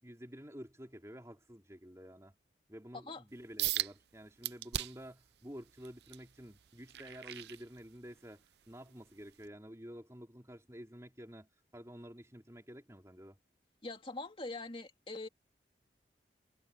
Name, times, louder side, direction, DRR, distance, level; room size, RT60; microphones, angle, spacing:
voice 1, 0.0-2.3 2.7-13.4, equal, 15° right, 4.1 m, -50 dB
sound 1, 3.6-3.9 4.4-5.1 5.6-8.2 8.7-8.9 9.4-9.5, right 14 dB, 75° right, 0.5 m, -38 dB
voice 2, 13.8-15.3, left 2 dB, 30° left, 2.9 m, -43 dB
head